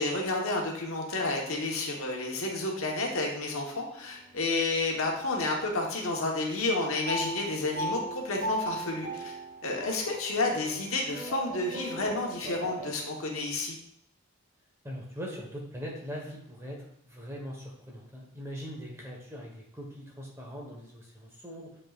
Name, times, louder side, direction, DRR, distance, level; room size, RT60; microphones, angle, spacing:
voice 1, 0.0-9.3 9.6-13.8, left 2 dB, 80° left, 0 dB, 1.2 m, -30 dB
sound 1, 4.0-4.8 5.5-6.1 7.1-13.0, right 1 dB, 30° right, 0.8 m, -38 dB
voice 2, 14.8-21.7, equal, 15° right, -2 dB, 1.3 m, -41 dB
7.3 x 5.5 x 2.4 m, 0.72 s
head